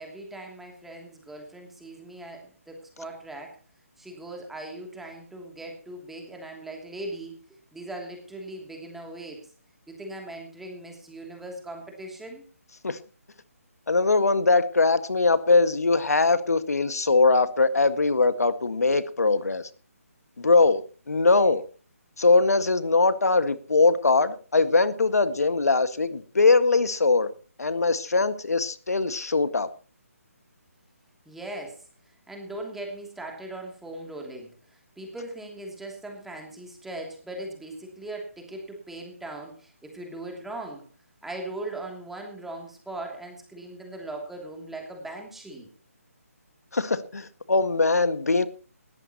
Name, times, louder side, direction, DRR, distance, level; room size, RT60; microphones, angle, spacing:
voice 1, 0.0-3.6 4.0-7.4 7.7-9.5 9.9-12.4 31.2-31.8 32.3-40.9 41.2-45.7, right 2 dB, 5° right, 1 dB, 2.9 m, -39 dB
voice 2, 13.9-19.6 20.4-20.8 21.1-21.6 22.2-27.3 27.6-29.7 46.7-48.5, left 3 dB, 80° left, 11 dB, 1.8 m, -21 dB
19.5 x 14.5 x 3.0 m, 0.35 s
figure-of-eight pair, 155°, 8 cm